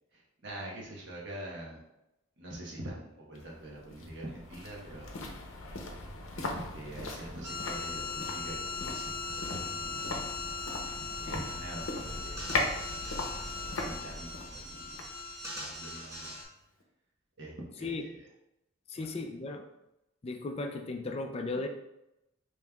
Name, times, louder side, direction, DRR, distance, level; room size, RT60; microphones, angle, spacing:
voice 1, 0.1-1.8 2.4-5.3 6.4-10.2 10.9-12.8 13.8-14.9 15.5-16.4 17.4-18.3 18.9-19.1, right 1 dB, 60° right, -3 dB, 1.0 m, -45 dB
sound 1, 3.3-16.5 16.8-16.9, left 2 dB, 75° left, 0.7 m, -39 dB
sound 2, 7.4-16.4, left 4 dB, 15° right, 0.9 m, -39 dB
voice 2, 18.9-19.6 20.2-21.7, left 3 dB, 30° left, 5 dB, 0.4 m, -36 dB
5.3 x 3.0 x 2.3 m, 0.89 s
head